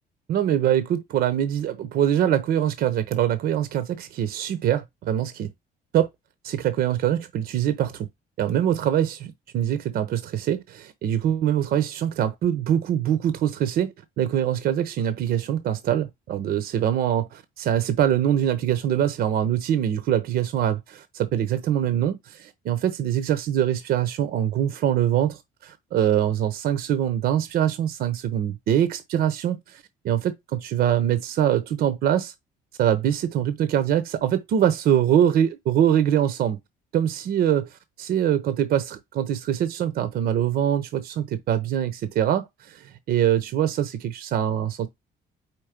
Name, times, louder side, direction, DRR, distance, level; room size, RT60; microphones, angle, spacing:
voice 1, 0.3-5.5 5.9-6.1 6.4-8.1 8.4-32.3 32.8-36.6 36.9-44.9, right 10 dB, 65° right, 0.8 m, -23 dB
4.6 x 4.2 x 5.0 m
cardioid pair, 110°, 17 cm